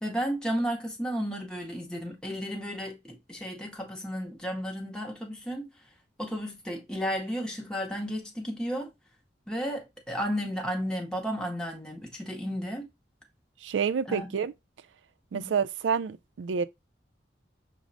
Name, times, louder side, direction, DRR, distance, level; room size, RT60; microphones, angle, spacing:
voice 1, 0.0-5.7 6.2-8.9 9.5-12.9 14.1-14.3 15.3-15.5, equal, 5° left, 0.7 m, -33 dB
voice 2, 13.6-14.5 15.3-16.7, right 6 dB, 85° right, 0.4 m, -28 dB
6.1 x 2.0 x 2.5 m
head